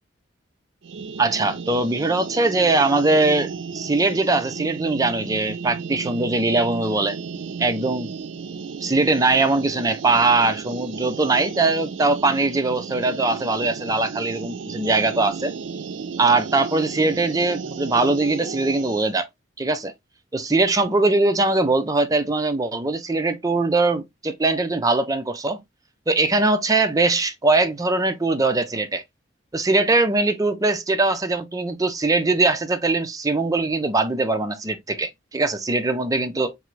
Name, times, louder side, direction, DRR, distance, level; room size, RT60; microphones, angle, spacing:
sound 1, 0.8-19.1, right 5 dB, 70° right, 0.4 m, -34 dB
voice 1, 1.2-7.2 7.6-8.1 8.8-15.5 16.2-19.3 19.6-19.9 20.3-25.6 26.1-29.0 29.5-36.6, right 3 dB, 20° right, 0.5 m, -21 dB
3.7 x 3.3 x 3.0 m
head